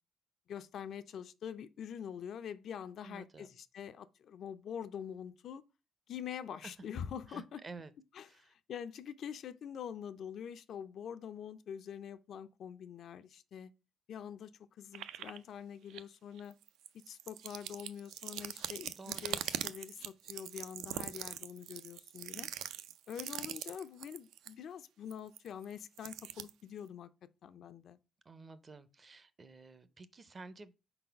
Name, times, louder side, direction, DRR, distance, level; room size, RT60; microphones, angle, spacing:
voice 1, 0.5-5.6 6.1-7.6 8.1-13.7 14.1-16.6 17.1-22.5 23.1-27.1 27.4-28.0, left 8 dB, 55° left, 0.4 m, -45 dB
voice 2, 3.0-3.5 6.6-6.7 7.3-7.9 8.3-8.5 19.0-19.3 28.3-30.7, right 3 dB, 25° right, 0.5 m, -51 dB
sound 1, 14.9-15.4 15.9-16.0 16.4-24.5 25.1-26.5, right 11 dB, 90° right, 0.4 m, -42 dB
4.5 x 4.0 x 5.6 m
cardioid pair, 145°, 0 cm